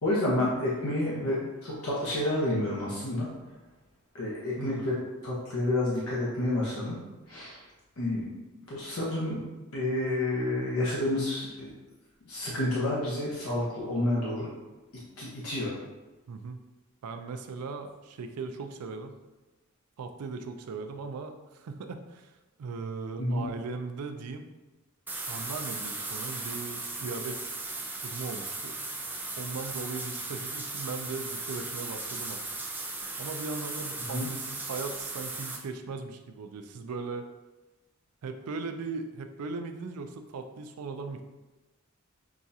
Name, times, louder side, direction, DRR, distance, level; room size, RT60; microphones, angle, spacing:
voice 1, 0.0-3.3 4.1-5.0 5.2-7.0 7.3-7.6 8.0-8.3 8.7-9.4 9.7-11.7 12.2-14.5 15.2-15.7 23.2-23.4 34.1-34.3, left 1 dB, 70° left, -6 dB, 0.8 m, -29 dB
voice 2, 4.6-4.9 16.3-16.6 17.0-19.2 20.0-22.3 22.6-24.4 25.3-27.6 28.0-28.7 29.4-32.4 33.2-37.3 38.2-41.2, right 4 dB, 90° right, 7 dB, 0.4 m, -38 dB
sound 1, 25.1-35.6, right 2 dB, 10° right, 0.4 m, -37 dB
5.9 x 2.3 x 2.7 m, 1.1 s
head